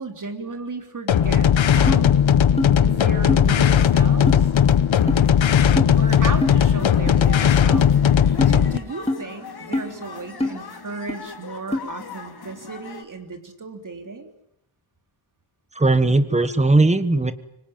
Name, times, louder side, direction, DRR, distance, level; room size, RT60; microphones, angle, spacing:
voice 1, 0.0-2.2 2.8-4.5 5.9-8.0 8.3-14.3, right 3 dB, 40° right, 5 dB, 3.4 m, -34 dB
sound 1, 1.1-8.8, left 8 dB, 70° left, 1.1 m, -17 dB
sound 2, 1.9-2.0 2.6-2.7 3.3-3.4 4.3-4.4 5.1-5.2 5.8-5.9 6.4-6.6 7.1-7.2 7.7-7.9 8.4-8.5 9.1-9.2 9.7-9.9 10.4-10.6 11.1-11.2 11.7-11.8, left 1 dB, 10° left, 2.7 m, -23 dB
sound 3, 3.4-13.1, left 5 dB, 50° left, 2.7 m, -40 dB
voice 2, 15.7-17.3, right 2 dB, 15° right, 12 dB, 1.3 m, -18 dB
25.5 x 25.0 x 8.9 m, 0.80 s
wide cardioid pair, 175°, 48 cm